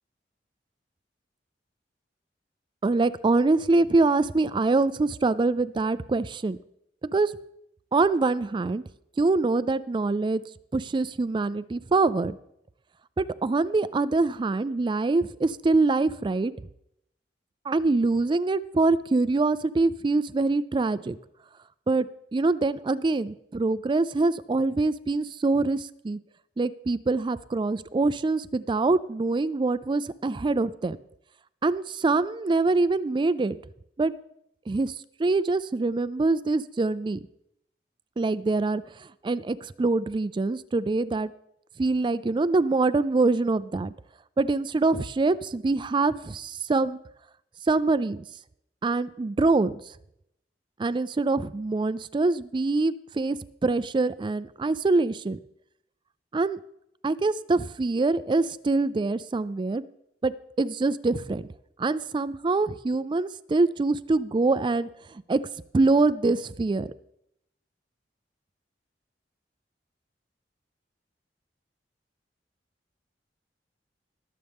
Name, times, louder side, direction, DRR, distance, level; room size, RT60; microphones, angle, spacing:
voice 1, 2.8-6.6 7.1-7.3 7.9-8.8 9.2-10.4 10.7-12.4 13.2-16.5 17.7-21.2 21.9-26.2 26.6-31.0 31.6-33.6 34.0-34.1 34.7-34.9 35.2-37.2 38.2-38.8 39.2-41.3 41.8-43.9 44.4-47.0 47.7-48.2 48.8-49.7 50.8-53.4 53.6-55.4 56.3-56.6 57.0-59.8 60.2-60.3 60.6-61.5 61.8-64.9 65.3-65.4 65.7-66.9, right 3 dB, 25° right, 15 dB, 0.4 m, -24 dB
21.0 x 7.7 x 3.5 m, 0.76 s
head